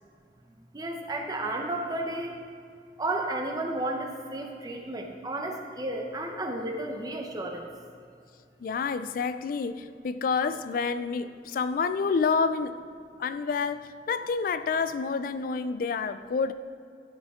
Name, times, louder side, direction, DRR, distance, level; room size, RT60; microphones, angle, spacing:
voice 1, 0.7-2.3 3.0-7.6, right 2 dB, 20° right, 2 dB, 0.7 m, -32 dB
voice 2, 8.6-12.8 13.2-16.5, left 5 dB, 50° left, 12 dB, 0.3 m, -28 dB
12.5 x 5.2 x 3.6 m, 2.4 s
head